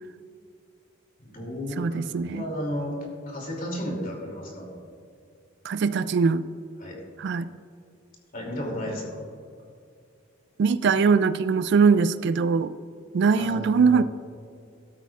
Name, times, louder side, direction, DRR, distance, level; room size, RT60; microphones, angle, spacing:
voice 1, 1.2-4.7 6.8-7.0 8.3-9.2 13.4-14.0, equal, 45° left, -1 dB, 2.6 m, -33 dB
voice 2, 1.8-2.5 5.6-6.4 7.2-7.5 10.6-12.7 13.1-14.0, right 5 dB, 60° right, 14 dB, 0.3 m, -21 dB
13.5 x 12.5 x 2.4 m, 2.3 s
head